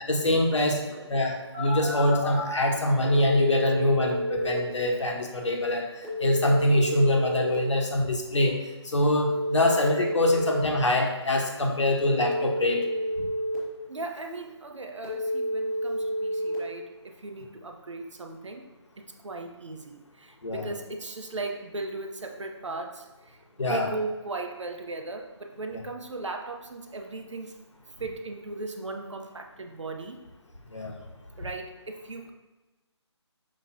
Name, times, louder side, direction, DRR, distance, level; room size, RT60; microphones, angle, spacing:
voice 1, 0.1-0.8 1.1-5.9 6.2-8.6 8.8-12.9 20.4-20.7 23.6-24.0 25.7-25.8 30.7-31.0, left 1 dB, 90° left, 1 dB, 1.5 m, -24 dB
Telephone, 1.5-2.5 3.0-4.5 6.0-7.5 9.0-10.5 12.0-13.5 15.0-16.5, equal, ahead, 0.7 m, -30 dB
voice 2, 13.9-18.7 19.0-27.6 28.0-30.2 31.4-32.3, right 3 dB, 85° right, 4 dB, 1.0 m, -37 dB
6.4 x 5.3 x 2.9 m, 1.1 s
hypercardioid pair, 175°, 15 cm